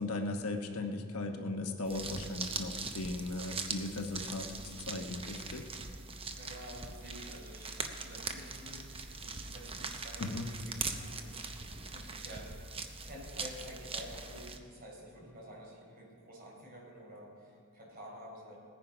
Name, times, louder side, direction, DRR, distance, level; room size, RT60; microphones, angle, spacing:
voice 1, 0.0-5.6 10.2-10.5, left 2 dB, 70° left, 4 dB, 1.1 m, -37 dB
sound 1, 1.8-14.6, right 4 dB, 25° right, 0.8 m, -41 dB
voice 2, 6.3-18.6, equal, 45° right, -3 dB, 4.3 m, -50 dB
18.5 x 9.9 x 5.1 m, 2.3 s
head